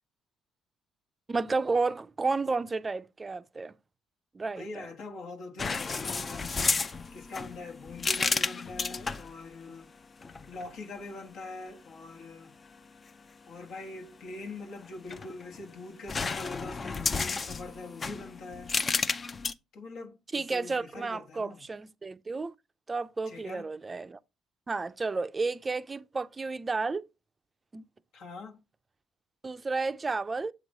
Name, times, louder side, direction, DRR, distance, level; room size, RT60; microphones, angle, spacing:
voice 1, 1.3-3.7 4.3-4.9 20.3-22.5 22.9-24.2 24.7-27.0 27.7-27.8 29.4-30.5, right 3 dB, 30° right, 0.5 m, -32 dB
voice 2, 4.6-6.8 7.1-9.9 10.5-12.5 13.5-18.7 19.7-21.7 23.3-23.7 28.1-28.6, left 3 dB, 70° left, 1.2 m, -43 dB
sound 1, 5.6-9.3 10.2-10.7 14.8-15.6 16.1-19.5, left 4 dB, 35° left, 0.5 m, -32 dB
7.5 x 3.1 x 5.2 m
supercardioid pair, 60°, 0 cm